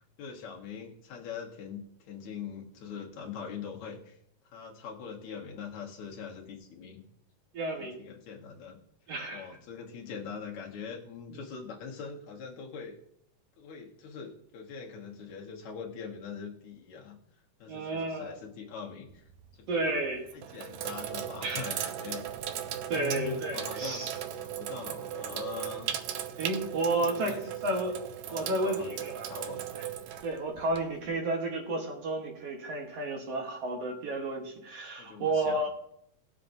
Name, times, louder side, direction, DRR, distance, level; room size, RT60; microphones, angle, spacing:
voice 1, 0.2-4.2 4.5-7.0 7.8-8.8 9.3-12.9 13.6-17.2 17.6-19.2 19.7-19.8 20.3-22.2 22.9-24.0 24.4-25.9 27.0-27.4 28.3-28.9 29.3-29.6 35.0-35.7, left 6 dB, 70° left, 0 dB, 2.6 m, -42 dB
voice 2, 7.5-8.0 9.1-9.5 17.7-18.4 19.7-20.3 21.4-21.9 22.9-24.1 26.4-27.4 27.6-28.0 28.3-29.3 30.2-35.7, right 2 dB, 60° right, 1 dB, 2.1 m, -32 dB
Sink (filling or washing), 19.1-19.5 20.2-31.1, right 10 dB, 80° right, 2.1 m, -37 dB
18.5 x 7.4 x 2.6 m, 0.71 s
omnidirectional pair, 3.4 m